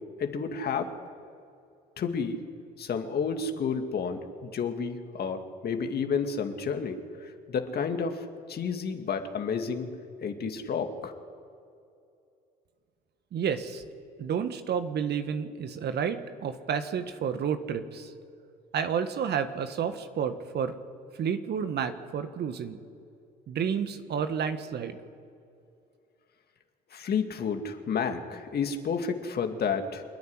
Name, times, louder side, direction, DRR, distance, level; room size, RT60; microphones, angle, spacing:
voice 1, 0.2-0.9 2.0-2.4 2.8-9.9 10.2-11.1 26.9-30.0, left 6 dB, 50° left, 6 dB, 2.3 m, -31 dB
voice 2, 13.3-13.8 14.2-18.1 18.7-20.8 21.2-22.8 23.5-25.0, right 7 dB, 50° right, 9 dB, 1.5 m, -30 dB
27.0 x 9.5 x 10.0 m, 2.5 s
hypercardioid pair, 60°, 21 cm